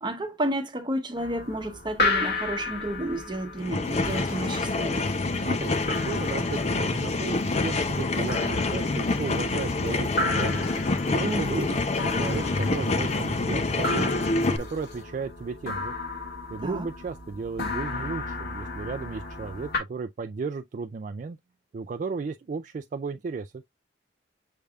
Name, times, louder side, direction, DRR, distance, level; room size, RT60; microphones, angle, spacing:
voice 1, 0.0-5.1 11.2-11.8 16.6-16.9, right 1 dB, 25° right, 1.0 m, -31 dB
sound 1, 1.1-19.8, left 2 dB, 60° left, 1.7 m, -34 dB
sound 2, 3.6-14.6, left 3 dB, 35° left, 0.5 m, -27 dB
sound 3, 3.8-15.0, left 2 dB, 80° left, 3.5 m, -51 dB
voice 2, 5.4-5.7 6.0-11.7 12.2-14.1 14.5-15.9 16.5-21.4 21.7-23.6, right 4 dB, 45° right, 0.3 m, -34 dB
6.7 x 3.3 x 2.3 m
head